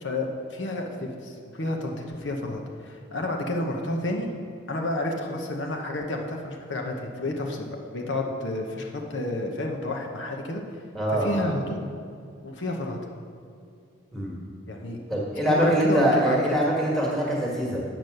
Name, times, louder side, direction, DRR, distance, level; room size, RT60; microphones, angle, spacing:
voice 1, 0.0-4.3 4.7-7.7 7.9-10.6 11.1-11.8 12.4-13.0 14.7-15.0 15.4-16.4, left 2 dB, 70° left, 1 dB, 1.0 m, -30 dB
voice 2, 10.9-11.4 14.1-14.4 15.1-17.8, right 1 dB, ahead, -4 dB, 1.7 m, -23 dB
9.0 x 6.1 x 6.6 m, 2.4 s
head